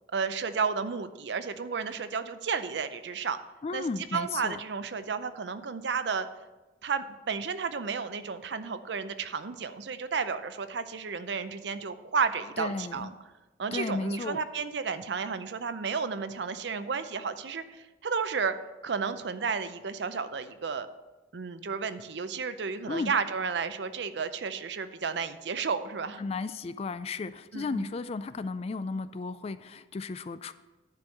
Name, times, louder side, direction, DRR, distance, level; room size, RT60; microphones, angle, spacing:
voice 1, 0.1-3.4 3.7-3.8 4.1-6.3 6.8-13.1 13.6-18.5 18.8-20.9 21.3-26.2 27.5-27.9, right 5 dB, 70° right, 12 dB, 0.6 m, -32 dB
voice 2, 3.6-4.6 12.6-13.1 13.7-14.4 22.9-23.1 26.2-30.5, left 4 dB, 35° left, 14 dB, 0.3 m, -34 dB
10.5 x 4.6 x 6.4 m, 1.1 s
head